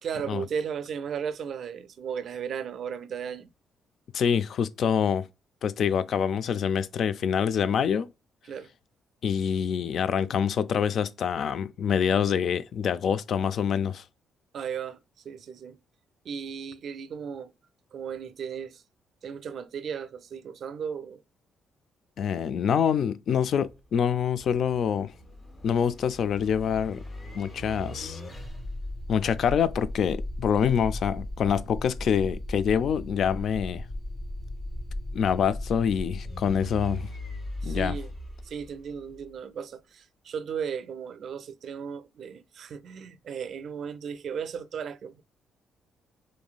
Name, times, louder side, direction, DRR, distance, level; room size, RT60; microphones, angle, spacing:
voice 1, 0.0-3.5 8.5-8.7 14.5-15.8 16.2-17.5 17.9-18.8 19.2-21.2 37.6-38.1 38.4-45.2, right 7 dB, 60° right, 0.4 m, -35 dB
voice 2, 4.1-5.3 5.6-8.1 9.2-14.0 22.2-25.1 25.6-27.0 27.3-28.2 29.1-33.8 35.1-37.1 37.6-38.0, left 7 dB, 60° left, 0.3 m, -26 dB
sound 1, 23.5-39.3, left 1 dB, 30° left, 1.1 m, -38 dB
3.1 x 2.6 x 2.2 m
cardioid pair, 90°, 0 cm